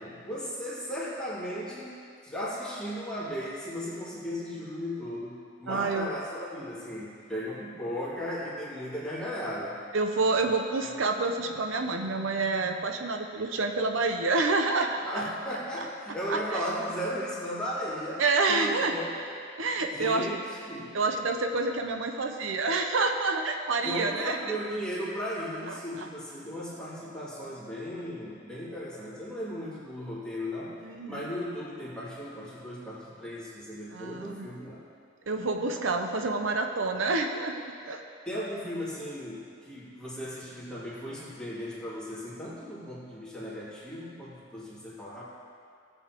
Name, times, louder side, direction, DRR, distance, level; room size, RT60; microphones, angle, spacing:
voice 1, 0.0-1.9 2.2-9.8 10.5-10.7 15.0-18.2 18.5-19.2 19.9-21.0 23.8-30.8 31.1-34.8 38.3-45.3, equal, 5° left, -10 dB, 2.4 m, -36 dB
voice 2, 5.7-6.1 9.9-15.2 15.8-15.9 16.3-16.6 18.2-18.9 19.6-20.3 20.9-24.5 25.9-26.1 30.8-31.2 33.9-34.5 35.3-37.5 37.9-38.0, right 3 dB, 85° right, 5 dB, 0.7 m, -28 dB
17.5 x 8.0 x 2.9 m, 2.3 s
head